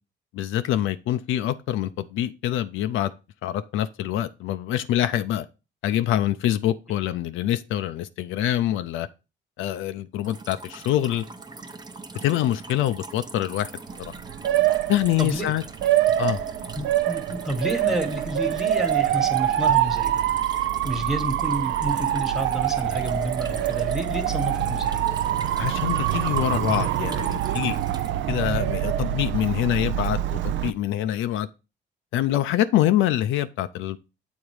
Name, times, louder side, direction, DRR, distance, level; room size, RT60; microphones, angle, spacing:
voice 1, 0.3-3.1 3.4-5.5 5.8-9.1 9.6-11.2 12.2-13.7 14.0-14.1 14.9-15.6 16.2-16.4 25.6-27.8 28.3-31.5 32.1-34.0, left 12 dB, 85° left, 0.5 m, -25 dB
sound 1, 10.2-28.1, right 3 dB, 20° right, 0.8 m, -41 dB
Motor vehicle (road) / Siren, 13.9-30.7, right 12 dB, 70° right, 0.5 m, -25 dB
voice 2, 15.2-15.5 16.7-20.2 20.8-25.1, right 1 dB, ahead, 1.3 m, -30 dB
7.3 x 3.9 x 4.7 m
cardioid pair, 90°, 20 cm